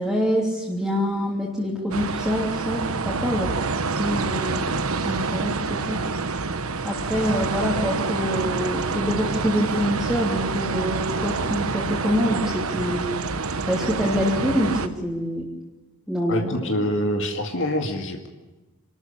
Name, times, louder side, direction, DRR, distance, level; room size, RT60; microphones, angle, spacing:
voice 1, 0.0-3.5 4.0-6.0 6.8-13.1 13.7-15.5 16.1-16.7, equal, ahead, -5 dB, 3.2 m, -26 dB
sound 1, 1.9-14.9, right 4 dB, 70° right, 1.2 m, -27 dB
voice 2, 16.3-18.3, equal, 60° left, 3 dB, 2.1 m, -25 dB
27.5 x 13.5 x 8.8 m, 1.2 s
head